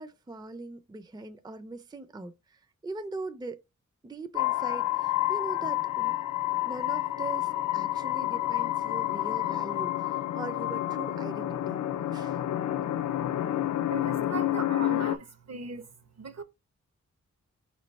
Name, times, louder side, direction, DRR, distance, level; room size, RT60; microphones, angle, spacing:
voice 1, 0.0-3.6 4.0-6.2 6.6-11.8 12.1-12.4, right 3 dB, 15° right, 0.5 m, -41 dB
sound 1, 4.4-15.2, left 14 dB, 65° left, 0.5 m, -29 dB
voice 2, 13.9-15.8 16.2-16.4, right 4 dB, 60° right, 1.0 m, -38 dB
3.9 x 3.2 x 4.0 m
cardioid pair, 65°, 30 cm